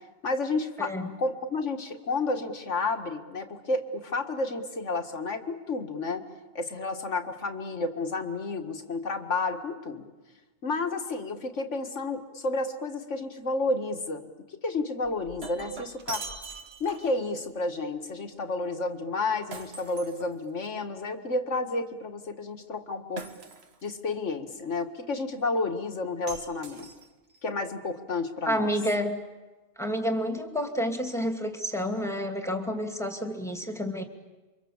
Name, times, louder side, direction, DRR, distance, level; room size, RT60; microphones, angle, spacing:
voice 1, 0.2-6.2 6.6-10.0 10.6-14.3 14.6-16.2 16.8-23.3 23.8-26.9 27.4-28.7, left 3 dB, 75° left, 5 dB, 2.1 m, -31 dB
voice 2, 0.8-1.1 28.5-29.2 29.8-34.0, equal, ahead, 4 dB, 2.3 m, -29 dB
Shatter, 15.0-17.3 19.5-20.8 23.2-24.0 26.3-27.4, right 4 dB, 60° right, 1.7 m, -42 dB
28.5 x 24.5 x 7.3 m, 1.2 s
omnidirectional pair, 1.2 m